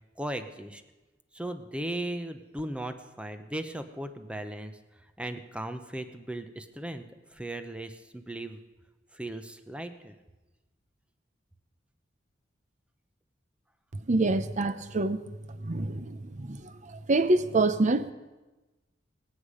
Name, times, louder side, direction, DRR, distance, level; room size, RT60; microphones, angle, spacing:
voice 1, 0.2-0.8 1.3-4.8 5.2-7.0 7.3-8.6 9.1-10.1, right 1 dB, 5° right, 8 dB, 0.8 m, -37 dB
voice 2, 14.1-15.2 15.6-18.1, right 2 dB, 40° right, 12 dB, 0.7 m, -26 dB
24.0 x 8.3 x 5.0 m, 1.1 s
head